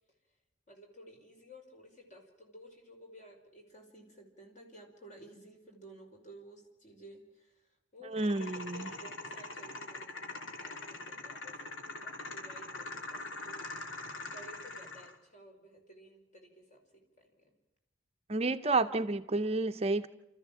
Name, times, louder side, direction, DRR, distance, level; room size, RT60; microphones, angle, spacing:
voice 1, 0.7-13.6 14.3-16.8 17.2-17.5, right 1 dB, 40° left, 2 dB, 5.4 m, -54 dB
voice 2, 8.0-8.9 18.3-20.1, right 3 dB, 30° right, 9 dB, 0.7 m, -30 dB
sound 1, 8.2-15.2, left 2 dB, 90° left, 2.7 m, -43 dB
29.5 x 14.0 x 7.6 m, 0.97 s
head